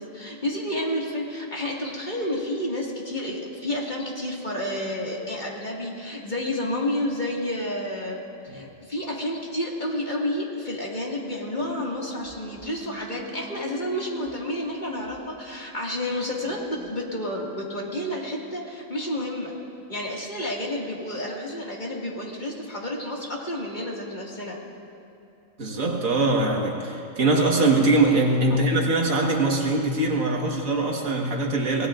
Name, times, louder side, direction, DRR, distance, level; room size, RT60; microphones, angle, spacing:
voice 1, 0.0-19.5 19.9-24.6 30.4-30.5, left 1 dB, 35° left, -3 dB, 2.2 m, -30 dB
sound 1, 11.6-18.6, left 2 dB, 25° right, 0.4 m, -43 dB
voice 2, 25.6-31.9, right 2 dB, 80° right, 0 dB, 2.0 m, -22 dB
23.5 x 19.0 x 2.5 m, 2.7 s
omnidirectional pair, 1.4 m